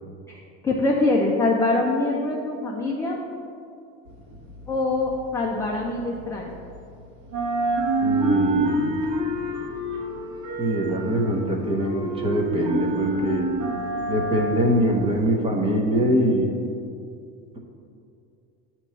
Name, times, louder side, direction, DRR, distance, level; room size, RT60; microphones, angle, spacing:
voice 1, 0.3-3.2 4.7-6.5, left 2 dB, 10° left, -2 dB, 0.3 m, -24 dB
sound 1, 4.1-6.9 7.2-15.4, right 2 dB, 75° right, 1.4 m, -27 dB
voice 2, 8.0-8.9 10.6-13.5 14.1-16.5, equal, 15° right, 1 dB, 0.8 m, -23 dB
8.9 x 3.0 x 5.5 m, 2.6 s
cardioid pair, 145°, 33 cm